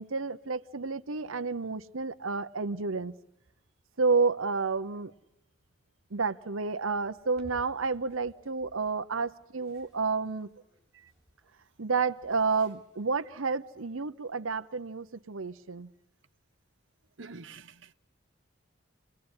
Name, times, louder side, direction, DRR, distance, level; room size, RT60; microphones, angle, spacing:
voice 1, 0.0-3.1 4.0-5.1 6.1-10.5 11.8-15.9, right 4 dB, 85° right, 1.0 m, -30 dB
sound 1, 6.9-13.2, equal, 15° left, 7.7 m, -59 dB
voice 2, 17.2-17.9, right 4 dB, 65° right, 1.0 m, -47 dB
28.5 x 20.0 x 9.8 m
head